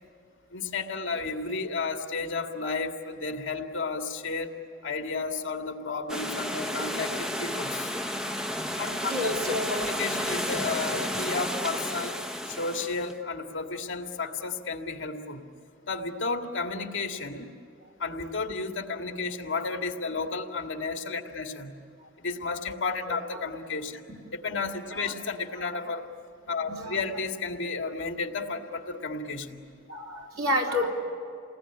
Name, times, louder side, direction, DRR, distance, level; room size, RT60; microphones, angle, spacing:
voice 1, 0.5-4.5 4.8-7.9 8.8-12.1 12.5-15.4 15.9-17.5 18.0-21.7 22.2-24.0 24.3-26.1 26.5-29.6, left 4 dB, 65° left, 4 dB, 2.0 m, -32 dB
sound 1, 6.1-13.1, equal, 5° right, 0.8 m, -32 dB
voice 2, 9.1-9.9 23.1-23.2 24.9-25.1 25.5-25.7 26.7-27.0 29.9-30.9, left 1 dB, 90° right, -2 dB, 3.9 m, -30 dB
28.5 x 20.0 x 10.0 m, 2.4 s
head